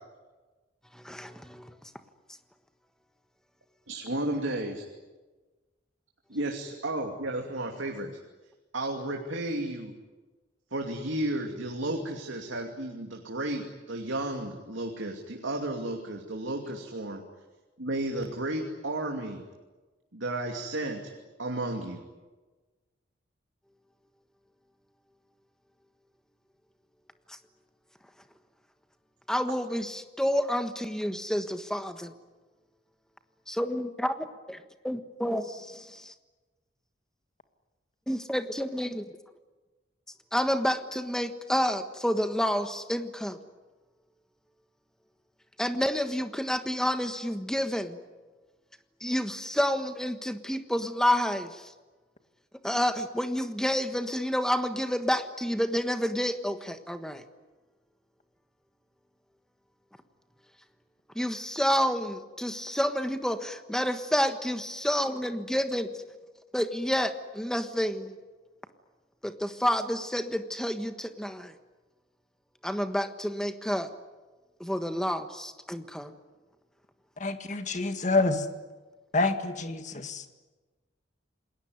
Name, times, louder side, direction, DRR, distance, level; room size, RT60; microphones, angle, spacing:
voice 1, 0.9-1.9 27.3-27.4 29.3-32.1 33.5-36.1 38.1-39.0 40.3-43.4 45.6-48.0 49.0-51.7 52.6-57.2 61.1-66.0 66.5-68.1 69.2-71.5 72.6-73.9 74.6-76.1, equal, 5° left, 8 dB, 1.4 m, -29 dB
voice 2, 3.9-4.9 6.3-8.1 8.7-9.9 10.7-17.2 17.8-19.4 20.1-21.1 21.4-22.0, right 1 dB, 90° right, 2 dB, 2.7 m, -33 dB
voice 3, 77.2-78.5 79.1-80.3, left 3 dB, 40° left, 7 dB, 1.9 m, -27 dB
28.5 x 20.5 x 9.6 m, 1.3 s
head